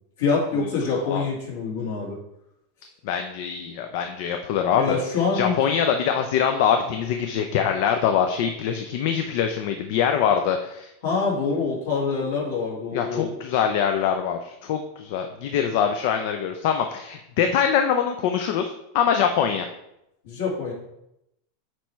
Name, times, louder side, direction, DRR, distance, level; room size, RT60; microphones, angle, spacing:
voice 1, 0.2-2.2 4.8-5.5 11.0-13.3 20.2-20.7, left 4 dB, 70° left, -4 dB, 2.7 m, -25 dB
voice 2, 3.0-5.0 5.3-10.9 12.9-19.7, left 8 dB, 55° left, 6 dB, 0.5 m, -23 dB
8.3 x 3.2 x 4.6 m, 0.84 s
supercardioid pair, 155°, 0 cm